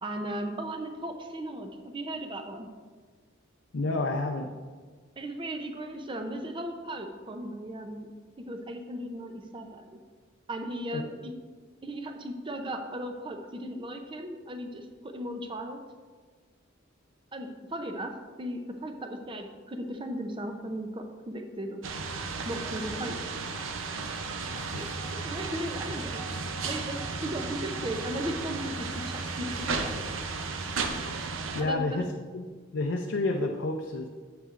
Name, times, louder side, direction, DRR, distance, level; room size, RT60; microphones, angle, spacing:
voice 1, 0.0-2.7 5.2-8.1 8.4-10.0 10.5-11.3 11.8-15.8 17.3-18.1 18.4-21.8 22.5-23.2 24.4-25.0 25.2-26.3 26.6-29.9 31.6-32.1, right 1 dB, 25° right, 5 dB, 0.6 m, -36 dB
voice 2, 3.7-4.5 10.9-11.0 24.5-24.7 31.5-32.1 32.3-32.5 32.7-34.1, left 2 dB, 70° left, 2 dB, 0.5 m, -29 dB
sound 1, 21.8-31.6, right 4 dB, 90° right, 0.6 m, -34 dB
8.1 x 7.9 x 2.5 m, 1.5 s
head